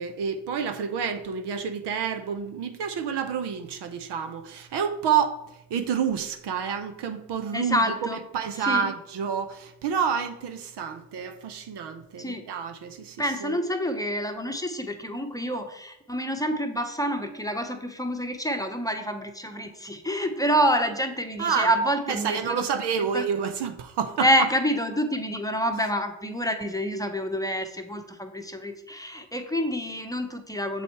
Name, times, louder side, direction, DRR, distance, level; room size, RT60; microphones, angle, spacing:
voice 1, 0.0-5.4 5.7-13.6 21.4-21.7 22.1-24.3, right 7 dB, 65° right, 9 dB, 0.8 m, -29 dB
voice 2, 7.5-8.2 8.6-8.9 12.2-12.5 13.2-22.7 23.0-23.3 24.2-30.8, equal, 10° left, 5 dB, 1.0 m, -27 dB
7.2 x 4.2 x 4.6 m, 0.84 s
supercardioid pair, 55°, 45 cm